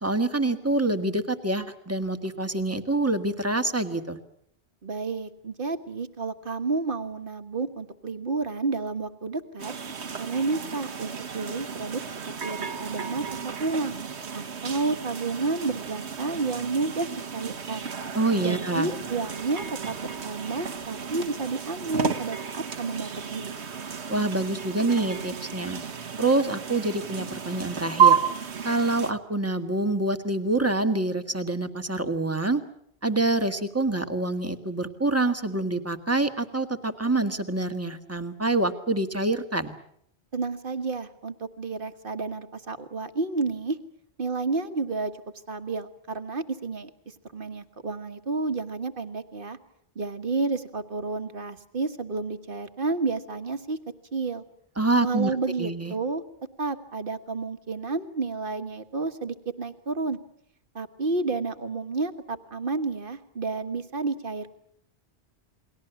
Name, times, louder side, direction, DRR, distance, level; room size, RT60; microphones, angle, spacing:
voice 1, 0.0-4.2 18.1-18.9 24.1-25.8 26.2-28.2 28.6-32.6 33.0-39.8 54.8-55.3 55.6-55.9, right 2 dB, 15° right, 7 dB, 1.6 m, -26 dB
voice 2, 4.8-9.7 10.2-12.0 12.3-14.0 14.3-17.9 18.4-23.5 40.3-43.8 44.2-45.1 45.5-49.6 49.9-53.8 54.1-54.4 55.0-56.2 56.6-60.2 60.7-64.5, right 3 dB, 50° right, 9 dB, 1.7 m, -31 dB
sound 1, 9.6-29.1, right 7 dB, 75° right, 1.6 m, -31 dB
29.5 x 21.5 x 7.0 m, 0.70 s
omnidirectional pair, 1.1 m